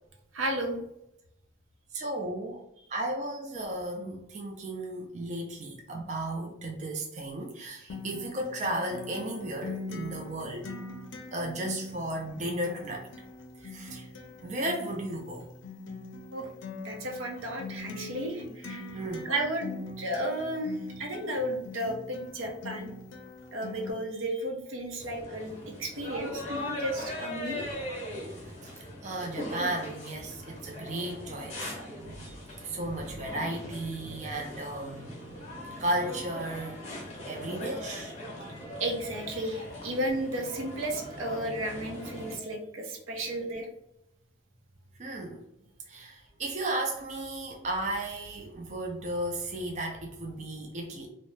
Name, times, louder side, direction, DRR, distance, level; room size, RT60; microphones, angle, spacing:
voice 1, 0.3-0.8 16.3-16.5 16.8-18.8 19.2-22.9 23.5-27.6 38.8-43.7, right 1 dB, 85° right, 0.6 m, -33 dB
voice 2, 1.9-2.6 2.9-10.7 11.3-13.1 13.6-14.1 14.4-15.5 18.9-19.3 23.6-23.7 28.6-35.2 35.8-38.4 42.3-42.5 43.1-43.2 45.0-45.4 45.9-51.1, right 1 dB, 35° right, 0.4 m, -35 dB
Acoustic guitar, 7.9-23.9, left 3 dB, 70° left, 0.5 m, -42 dB
sound 1, 25.0-42.4, left 1 dB, 35° left, 0.7 m, -40 dB
2.7 x 2.0 x 3.1 m
head